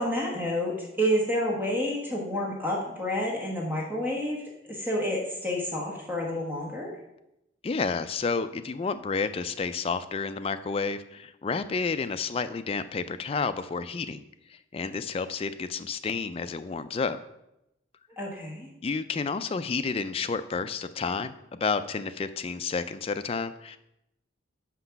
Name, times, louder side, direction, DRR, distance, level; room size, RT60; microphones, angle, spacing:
voice 1, 0.0-4.4 4.7-6.9 18.2-18.7, equal, 10° right, -3 dB, 1.3 m, -29 dB
voice 2, 7.6-14.2 14.5-17.2 18.8-23.8, left 4 dB, 30° left, 11 dB, 0.3 m, -30 dB
6.0 x 5.3 x 5.7 m, 0.87 s
head